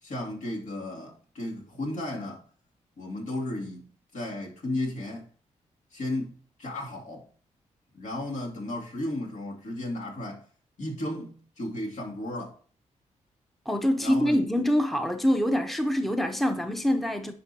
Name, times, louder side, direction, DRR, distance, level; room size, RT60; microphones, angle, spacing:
voice 1, 0.0-2.5 3.0-3.9 4.1-5.3 5.9-7.3 7.9-10.4 10.8-12.6 14.0-14.6, left 1 dB, 70° left, 2.6 m, -34 dB
voice 2, 13.7-17.3, equal, ahead, 0.7 m, -25 dB
10.0 x 5.4 x 2.8 m
cardioid pair, 95°, 13 cm